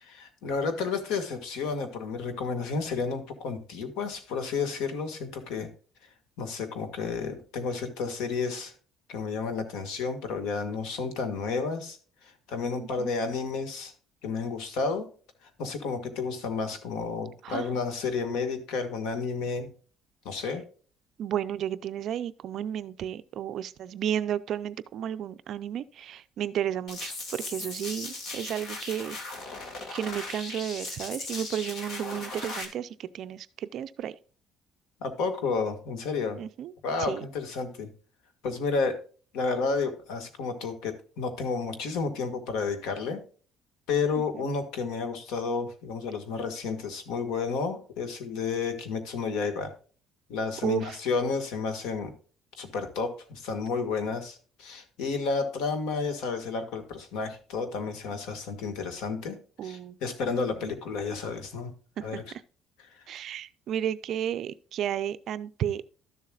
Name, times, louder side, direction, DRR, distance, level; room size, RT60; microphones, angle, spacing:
voice 1, 0.0-5.7 6.4-8.7 9.1-13.9 14.2-15.0 15.6-19.7 20.2-20.6 35.0-36.4 36.8-37.9 38.4-39.0 39.3-43.2 43.9-49.7 50.3-52.1 52.6-61.7 62.0-62.2, left 4 dB, 80° left, 1.7 m, -31 dB
voice 2, 12.8-13.1 17.4-17.7 21.2-29.2 29.9-34.2 36.4-36.7 37.0-37.2 50.6-51.0 59.6-60.0 60.2-60.3 62.0-62.2 63.1-65.8, right 10 dB, 45° right, 0.4 m, -33 dB
sound 1, 26.9-32.6, left 2 dB, 45° left, 1.7 m, -38 dB
12.5 x 7.2 x 2.4 m
cardioid pair, 175°, 0 cm